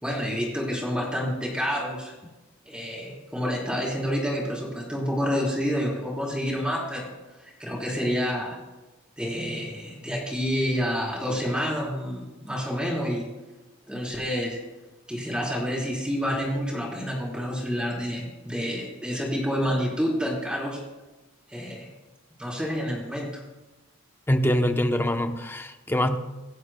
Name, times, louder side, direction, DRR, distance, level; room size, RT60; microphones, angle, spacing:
voice 1, 0.0-2.1 2.7-7.1 7.4-8.6 9.2-13.3 13.9-14.6 15.1-20.8 21.5-21.9 22.4-23.3, equal, 5° right, -4 dB, 3.8 m, -28 dB
voice 2, 24.3-26.2, equal, 10° left, 6 dB, 0.7 m, -24 dB
26.0 x 11.0 x 2.2 m, 1.1 s
head